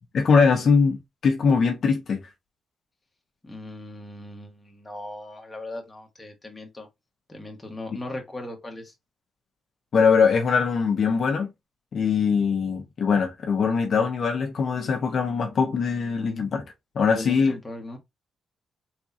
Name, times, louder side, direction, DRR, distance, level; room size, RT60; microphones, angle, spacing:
voice 1, 0.1-2.2 9.9-11.5 11.9-16.6 16.9-17.5, left 5 dB, 55° left, 1.0 m, -22 dB
voice 2, 3.4-6.9 7.3-8.9 17.1-18.0, left 1 dB, 15° left, 1.5 m, -38 dB
4.7 x 3.7 x 2.8 m
cardioid pair, 115°, 0 cm